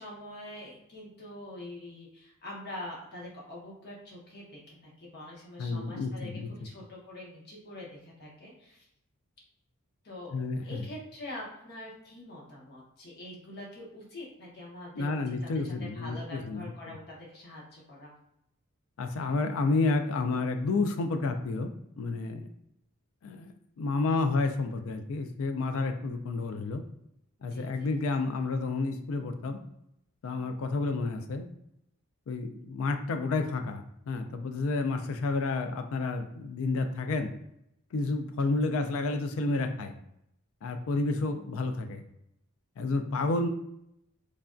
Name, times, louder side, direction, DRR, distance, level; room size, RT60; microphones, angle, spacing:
voice 1, 0.0-8.9 10.0-10.4 10.6-18.1 27.5-28.0, left 1 dB, 45° left, -4 dB, 0.9 m, -45 dB
voice 2, 5.6-6.5 10.3-10.8 15.0-16.7 19.0-21.7 22.0-22.5 23.2-26.8 27.4-29.6 30.2-31.5 32.3-37.3 37.9-39.9 40.6-42.0 42.8-43.5, left 3 dB, 65° left, 7 dB, 0.3 m, -30 dB
3.2 x 2.5 x 2.3 m, 0.78 s
head